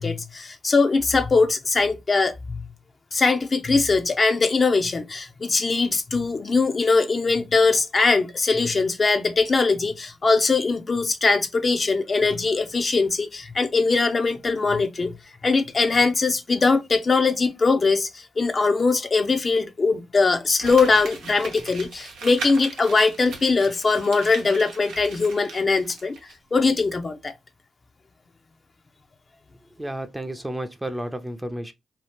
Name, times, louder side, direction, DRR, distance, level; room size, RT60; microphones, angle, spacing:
voice 1, 0.0-2.6 3.1-15.1 15.4-26.2 26.5-27.3, left 4 dB, 45° left, 0.6 m, -21 dB
Crumpling crinkling, 20.6-26.3 26.6-26.7, right 4 dB, 85° right, 0.8 m, -38 dB
voice 2, 29.8-31.7, right 1 dB, 15° right, 0.6 m, -32 dB
2.8 x 2.3 x 3.4 m
supercardioid pair, 50°, 0 cm